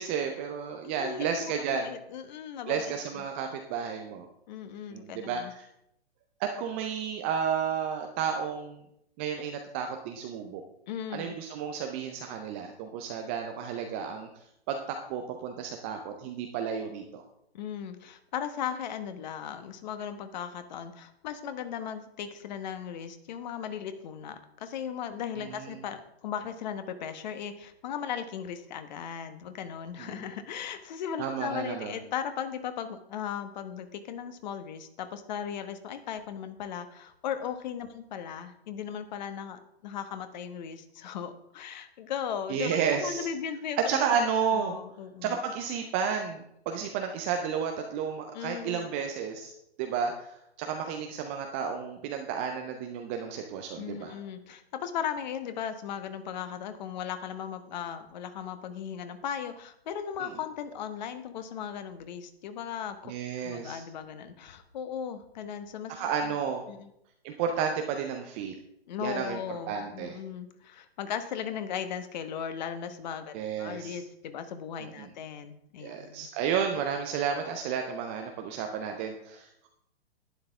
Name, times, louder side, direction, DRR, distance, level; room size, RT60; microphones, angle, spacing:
voice 1, 0.0-1.9 2.7-4.3 4.9-5.7 6.4-8.8 9.2-10.6 11.1-14.3 14.7-17.2 25.5-25.7 30.0-30.3 31.2-32.0 42.5-43.3 43.8-44.8 45.2-49.5 49.8-54.1 60.2-60.3 63.1-63.8 65.9-66.6 67.2-68.5 69.0-70.2 73.3-74.0 74.8-75.1 75.8-79.7, right 7 dB, 15° right, 4 dB, 0.3 m, -32 dB
voice 2, 0.8-2.9 4.5-5.5 10.9-11.3 17.5-44.0 44.5-45.4 48.3-48.9 53.8-63.1 63.4-66.4 66.7-66.9 68.9-76.3, left 8 dB, 45° left, 10 dB, 1.2 m, -37 dB
11.0 x 9.7 x 3.5 m, 0.78 s
figure-of-eight pair, 120°, 32 cm